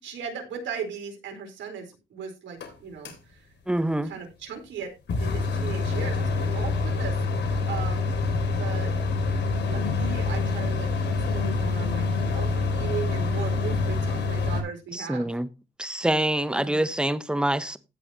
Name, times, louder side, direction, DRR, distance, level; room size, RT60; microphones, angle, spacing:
voice 1, 0.0-3.5 4.0-4.9 5.2-8.2 8.5-8.9 9.7-15.3 16.5-16.9, right 6 dB, 70° right, 4.3 m, -37 dB
sound 1, 2.6-2.7 3.0-3.1 5.1-14.6, left 3 dB, 60° left, 3.3 m, -26 dB
voice 2, 3.7-4.1 14.9-15.5 15.8-17.8, right 1 dB, 5° right, 0.9 m, -25 dB
16.5 x 5.5 x 2.9 m
cardioid pair, 90°, 20 cm